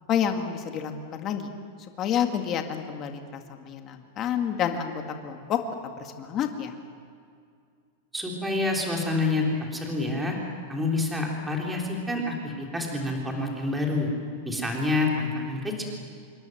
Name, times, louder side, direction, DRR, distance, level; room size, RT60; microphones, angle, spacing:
voice 1, 0.1-1.5 2.0-4.9 5.2-6.7, left 8 dB, 25° left, 5 dB, 2.0 m, -29 dB
voice 2, 8.1-9.4 9.7-10.3 10.7-14.1 14.4-15.9, left 2 dB, 5° right, -1 dB, 3.6 m, -28 dB
27.0 x 23.5 x 7.9 m, 2.3 s
supercardioid pair, 175°, 0 cm